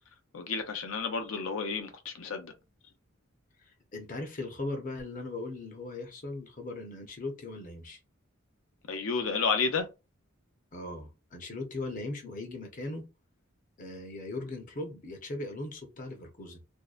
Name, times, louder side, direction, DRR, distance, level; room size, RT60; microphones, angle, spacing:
voice 1, 0.3-2.5 8.9-9.9, left 5 dB, 85° left, 0.6 m, -31 dB
voice 2, 3.9-8.0 10.7-13.1 13.8-16.6, left 2 dB, 40° left, 0.7 m, -39 dB
2.6 x 2.1 x 2.4 m
head